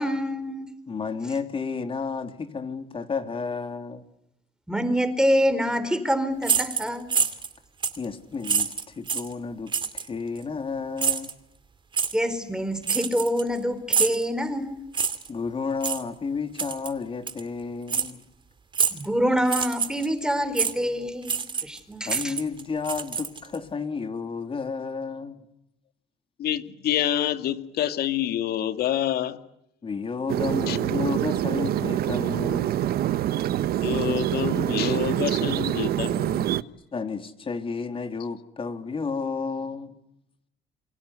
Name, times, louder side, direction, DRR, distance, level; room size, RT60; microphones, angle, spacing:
voice 1, 0.0-0.7 4.7-7.1 12.1-14.8 18.9-22.3, equal, 5° right, 4.4 m, -26 dB
voice 2, 0.9-4.0 8.0-11.3 15.3-18.3 22.0-25.4 29.8-33.0 36.9-40.0, left 5 dB, 30° left, 3.3 m, -32 dB
sound 1, 6.4-7.5 7.8-8.0 8.4-9.3 9.7-10.1 11.0-11.3 11.9-12.1 12.8-13.6 13.9-14.2 14.9-15.3 15.8-16.0 16.6-16.9 17.3-17.4 17.9-18.1 18.7-19.1 19.4-20.1 20.6-20.7 21.2-21.8 22.0-23.6, right 6 dB, 30° right, 2.5 m, -26 dB
voice 3, 26.4-29.4 30.7-30.8 33.8-36.5, left 11 dB, 65° left, 2.3 m, -27 dB
sound 2, 30.3-36.6, right 12 dB, 65° right, 1.1 m, -25 dB
28.5 x 24.5 x 8.3 m
cardioid pair, 110°, 17 cm